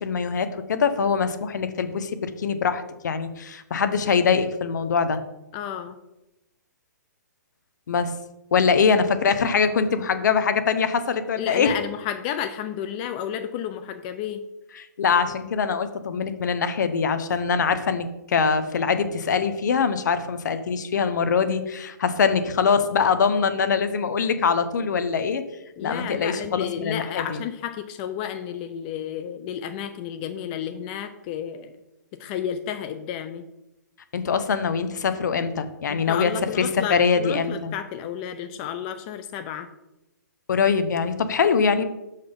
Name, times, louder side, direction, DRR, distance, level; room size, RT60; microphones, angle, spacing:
voice 1, 0.0-5.2 7.9-8.1 8.5-11.7 14.8-25.4 25.8-27.4 34.1-36.3 36.6-37.7 40.5-41.8, left 6 dB, 70° left, 11 dB, 0.8 m, -23 dB
voice 2, 5.5-6.0 11.4-14.4 25.8-31.7 32.2-33.5 35.9-39.7, left 9 dB, 30° left, 9 dB, 0.4 m, -32 dB
6.5 x 4.1 x 5.2 m, 0.95 s
hypercardioid pair, 145°, 10 cm